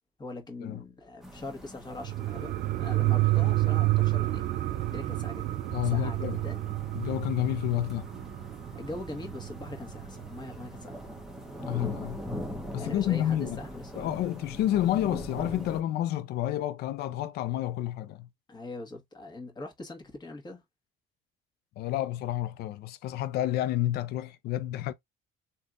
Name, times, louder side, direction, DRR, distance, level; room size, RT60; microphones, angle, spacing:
voice 1, 0.2-4.5 4.9-6.7 8.7-11.0 12.8-14.2 18.5-20.6, left 2 dB, 25° left, 1.4 m, -42 dB
sound 1, 1.2-15.8, equal, ahead, 1.0 m, -42 dB
sound 2, 2.0-11.1 11.4-11.5, right 17 dB, 65° right, 0.4 m, -29 dB
voice 2, 5.7-6.4 6.9-8.1 11.6-12.2 12.7-13.6 14.0-18.3 21.8-24.9, left 13 dB, 70° left, 0.5 m, -30 dB
3.4 x 2.8 x 2.4 m
cardioid pair, 110°, 17 cm